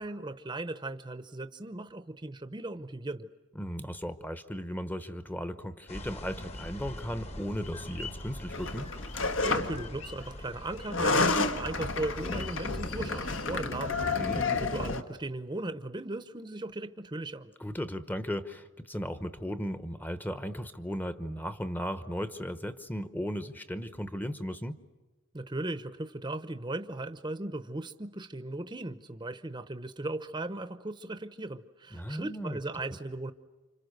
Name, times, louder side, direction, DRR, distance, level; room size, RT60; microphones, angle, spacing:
voice 1, 0.0-3.3 9.4-17.5 25.3-33.3, right 2 dB, 20° right, 10 dB, 0.8 m, -37 dB
voice 2, 3.5-8.9 14.1-14.4 17.6-24.8 31.9-32.6, equal, 10° left, 11 dB, 0.9 m, -36 dB
sound 1, 5.9-13.7, left 1 dB, 30° left, 1.3 m, -42 dB
sound 2, 8.5-9.9 10.8-15.0, left 3 dB, 70° left, 1.4 m, -30 dB
30.0 x 26.5 x 6.6 m, 1.2 s
head